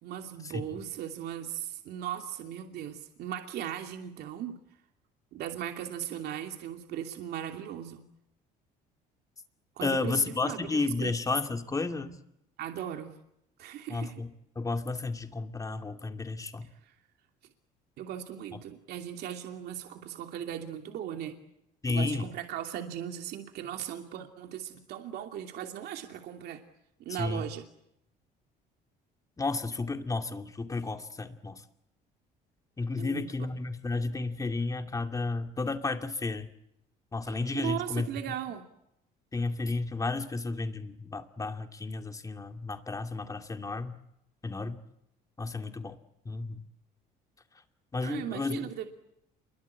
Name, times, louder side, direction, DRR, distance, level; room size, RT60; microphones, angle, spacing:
voice 1, 0.0-4.6 5.3-8.0 9.8-11.1 12.6-13.2 13.6-14.1 16.8-16.9 18.0-21.3 21.9-26.6 27.0-27.6 33.0-33.5 37.3-38.6 48.0-48.9, right 10 dB, 65° right, 4 dB, 2.7 m, -38 dB
voice 2, 0.5-0.8 9.8-12.2 13.9-14.3 14.6-16.7 21.8-22.3 27.2-27.4 29.4-31.6 32.8-36.5 37.1-38.1 39.3-44.0 44.4-44.8 45.4-46.0 46.2-46.6 47.9-48.6, left 3 dB, 20° left, 6 dB, 2.6 m, -32 dB
28.0 x 23.5 x 8.6 m, 0.80 s
cardioid pair, 115°, 18 cm